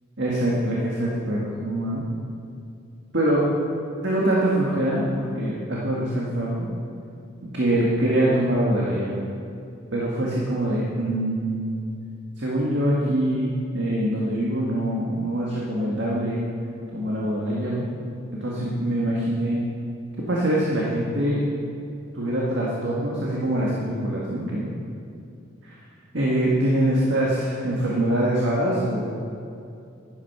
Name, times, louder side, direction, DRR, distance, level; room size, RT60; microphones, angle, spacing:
voice 1, 0.2-2.0 3.1-3.5 4.0-6.7 7.4-9.1 9.9-11.6 12.4-16.4 16.9-17.9 18.4-19.6 20.2-21.5 22.1-24.7 25.6-25.8 26.1-29.2, right 1 dB, 60° right, -5 dB, 1.8 m, -24 dB
11.5 x 10.5 x 5.7 m, 2.6 s
head